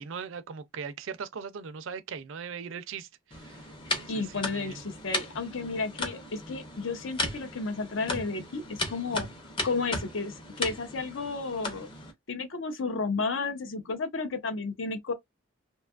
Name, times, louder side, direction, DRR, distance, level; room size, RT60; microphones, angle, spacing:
voice 1, 0.0-4.8, right 6 dB, 70° right, 0.4 m, -40 dB
sound 1, 3.3-12.1, left 2 dB, 25° left, 0.6 m, -36 dB
voice 2, 4.1-9.3 9.6-11.9 12.3-15.1, left 4 dB, 65° left, 0.6 m, -32 dB
2.6 x 2.3 x 2.3 m
head